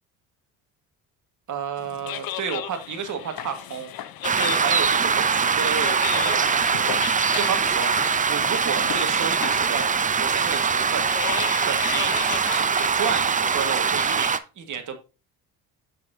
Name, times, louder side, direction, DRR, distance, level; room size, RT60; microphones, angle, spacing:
voice 1, 1.5-3.9 4.3-7.0 7.3-7.9 8.3-9.9 10.2-11.1 11.7-12.1 12.5-15.0, right 6 dB, 50° right, 6 dB, 1.8 m, -31 dB
sound 1, 1.8-14.0, left 12 dB, 65° left, 0.8 m, -36 dB
sound 2, 4.2-14.4, right 6 dB, 20° right, 0.5 m, -22 dB
7.4 x 6.3 x 2.7 m, 0.30 s
cardioid pair, 90°, 38 cm